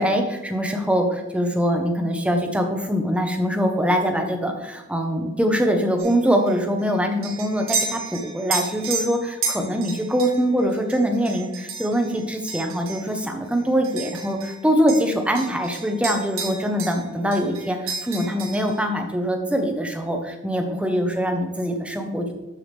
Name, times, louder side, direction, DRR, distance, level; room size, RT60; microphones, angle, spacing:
voice 1, 0.0-22.3, equal, 5° right, 4 dB, 0.9 m, -23 dB
sound 1, 6.0-14.6 14.9-17.1 17.3-18.8, right 4 dB, 70° right, 2.2 m, -32 dB
12.5 x 4.9 x 3.5 m, 1.1 s
head